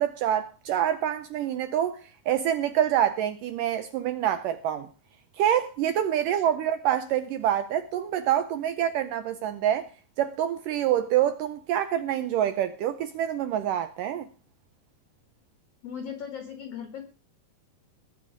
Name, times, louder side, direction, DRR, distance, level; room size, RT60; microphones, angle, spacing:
voice 1, 0.0-4.9 5.4-9.9 10.2-14.3, right 10 dB, 85° right, 1.9 m, -26 dB
voice 2, 15.8-17.0, left 7 dB, 60° left, 1.6 m, -38 dB
20.5 x 7.1 x 5.0 m
omnidirectional pair, 4.7 m